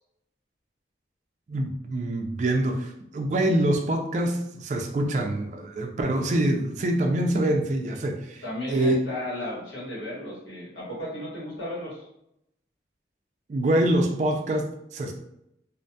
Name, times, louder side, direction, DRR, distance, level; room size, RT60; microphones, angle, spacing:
voice 1, 1.5-8.4 8.7-9.0 13.5-15.1, right 1 dB, 40° right, 3 dB, 0.3 m, -25 dB
voice 2, 8.4-12.0, left 1 dB, 85° left, -7 dB, 1.2 m, -34 dB
2.4 x 2.2 x 2.6 m, 0.79 s
head